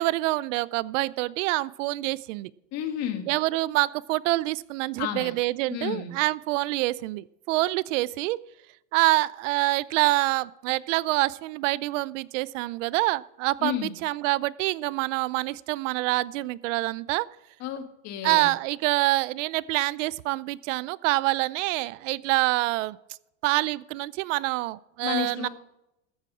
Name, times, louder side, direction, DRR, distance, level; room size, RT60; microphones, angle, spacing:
voice 1, 0.0-2.5 3.3-8.4 8.9-17.3 18.2-23.0 23.4-25.5, right 19 dB, 75° right, 21 dB, 0.6 m, -26 dB
voice 2, 2.7-3.3 5.0-5.3 5.7-6.1 13.6-14.0 17.6-18.5 25.0-25.5, left 10 dB, 45° left, 7 dB, 1.7 m, -31 dB
14.0 x 8.4 x 6.0 m, 0.87 s
supercardioid pair, 145°, 37 cm